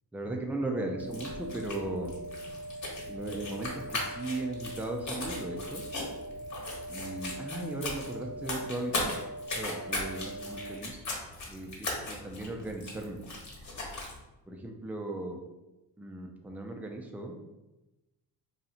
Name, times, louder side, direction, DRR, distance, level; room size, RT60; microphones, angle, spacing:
voice 1, 0.1-2.1 3.1-5.8 6.9-9.2 9.4-11.0 11.5-13.2 14.5-15.4 16.0-17.4, right 2 dB, 5° right, 2 dB, 0.4 m, -37 dB
sound 1, 0.8-10.8, right 1 dB, 65° left, 0.6 m, -42 dB
sound 2, 1.0-14.2, left 2 dB, 45° left, 1.2 m, -38 dB
2.8 x 2.4 x 4.1 m, 1.0 s
cardioid pair, 80°, 41 cm